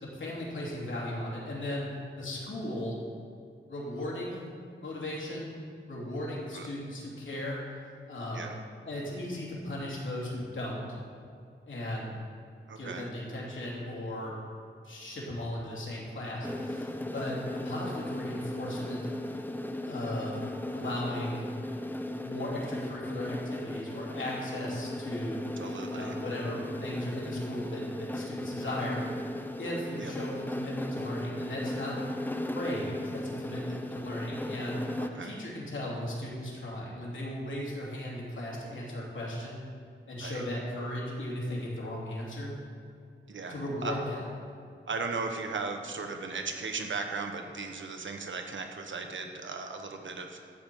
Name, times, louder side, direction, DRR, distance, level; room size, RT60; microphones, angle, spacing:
voice 1, 0.0-1.9 2.2-3.0 3.6-7.6 8.1-8.5 8.8-11.0 11.7-12.1 12.8-14.4 14.8-19.1 19.8-20.4 20.7-21.5 22.2-25.4 25.9-29.0 29.6-32.0 32.3-34.8 35.1-39.6 40.1-42.5 43.5-44.2, left 1 dB, 70° left, -5 dB, 3.1 m, -37 dB
voice 2, 12.7-13.1 25.6-26.2 30.0-30.1 35.1-35.3 40.2-40.4 43.3-43.9 44.9-50.4, right 4 dB, 70° right, 4 dB, 1.2 m, -37 dB
sound 1, 16.4-35.1, left 1 dB, 10° left, 0.7 m, -37 dB
12.5 x 5.2 x 7.8 m, 2.4 s
wide cardioid pair, 85°, 21 cm